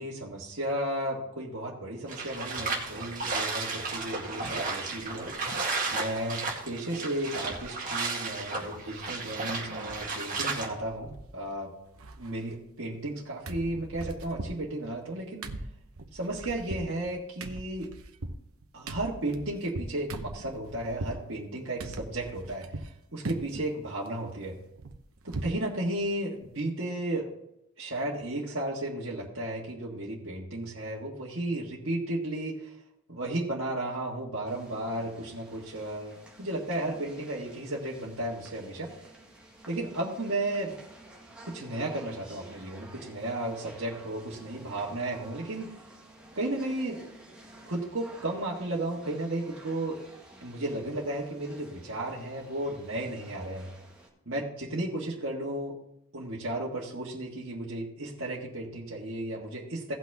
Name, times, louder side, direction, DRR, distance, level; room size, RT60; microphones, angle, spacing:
voice 1, 0.0-5.3 5.9-11.7 12.2-15.5 16.1-17.9 18.7-22.8 23.1-24.5 25.2-27.3 27.8-32.7 33.1-38.9 39.7-40.8 41.4-45.7 46.3-47.0 47.7-50.0 50.4-53.7 54.2-55.7 56.1-59.9, right 1 dB, 60° right, -6 dB, 1.7 m, -34 dB
sound 1, 2.1-10.7, right 3 dB, 40° right, 1.9 m, -33 dB
sound 2, 8.5-8.9 9.3-10.1 10.3-10.4 10.7-11.6 11.8-13.2 13.5-21.2 21.8-22.9 23.2-23.7 24.1-25.6 26.0-26.1 26.4-26.6, right 2 dB, 80° right, 0.9 m, -40 dB
sound 3, 34.4-54.1, right 1 dB, 5° right, 1.6 m, -52 dB
17.0 x 6.0 x 3.5 m, 0.81 s
head